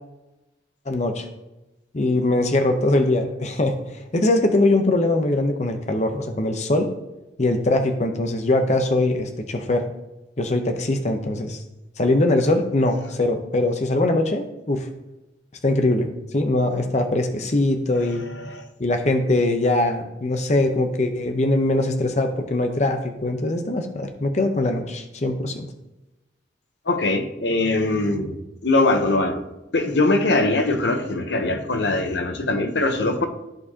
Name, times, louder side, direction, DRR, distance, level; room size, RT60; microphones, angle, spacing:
voice 1, 0.9-1.2 1.9-3.8 4.1-6.9 7.4-9.9 10.4-11.6 12.0-14.9 15.6-16.1 16.3-18.3 18.8-25.7, left 2 dB, 40° left, 0.7 m, -22 dB
voice 2, 18.1-18.7 26.9-28.4 28.6-29.4 29.7-33.3, left 2 dB, 85° left, 0.8 m, -22 dB
13.5 x 4.7 x 2.8 m
head